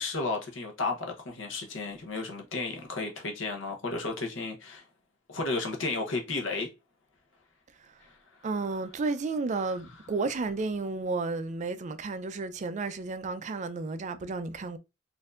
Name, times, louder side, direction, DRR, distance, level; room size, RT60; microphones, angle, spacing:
voice 1, 0.0-4.8 5.3-6.7 8.0-8.1, left 3 dB, 70° left, 0.9 m, -33 dB
voice 2, 8.4-14.8, right 3 dB, 40° right, 0.4 m, -32 dB
4.3 x 2.6 x 2.4 m
head